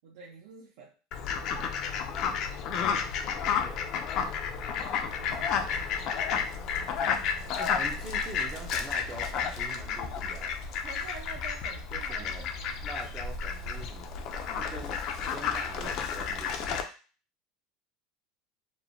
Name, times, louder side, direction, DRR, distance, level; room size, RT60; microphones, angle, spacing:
voice 1, 0.0-0.9 5.2-6.1 10.8-13.0, right 4 dB, 70° right, -3 dB, 0.6 m, -48 dB
Fowl, 1.1-16.8, left 6 dB, 40° left, 0.3 m, -32 dB
voice 2, 3.0-3.8 7.6-10.5 11.9-12.5 12.8-14.3 14.5-15.0 15.3-16.6, right 2 dB, 20° right, 1 dB, 0.5 m, -44 dB
3.0 x 2.1 x 2.6 m, 0.35 s
supercardioid pair, 160°, 0 cm